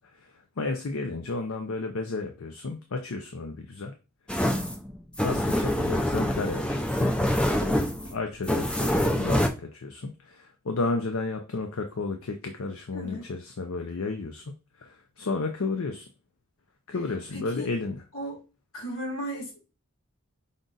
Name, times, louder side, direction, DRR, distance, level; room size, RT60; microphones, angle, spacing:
voice 1, 0.1-3.9 5.2-7.1 7.4-7.8 8.1-16.1 16.9-18.0, left 3 dB, 70° left, 5 dB, 0.6 m, -32 dB
sound 1, 4.3-9.5, left 1 dB, 5° left, 0.4 m, -25 dB
voice 2, 12.9-13.3 17.3-17.7 18.1-18.4 18.7-19.6, equal, 90° left, -2 dB, 2.3 m, -35 dB
5.2 x 2.4 x 3.8 m, 0.31 s
head